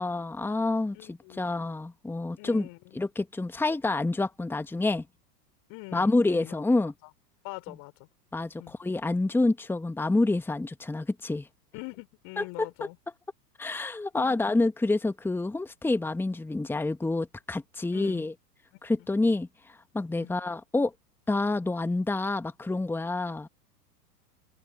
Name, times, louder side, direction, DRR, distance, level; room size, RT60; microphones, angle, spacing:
voice 1, 0.0-2.7 2.9-5.1 5.9-6.9 8.3-11.5 12.4-12.7 13.6-18.3 18.8-20.9 21.3-23.5, left 2 dB, 5° left, 1.7 m, -28 dB
voice 2, 0.9-1.5 2.4-3.0 5.7-6.6 7.4-8.1 8.6-8.7 11.7-13.0 14.2-14.4 17.9-18.3 19.0-19.1 20.2-20.3, left 32 dB, 40° left, 5.6 m, -43 dB
figure-of-eight pair, 100°, 48 cm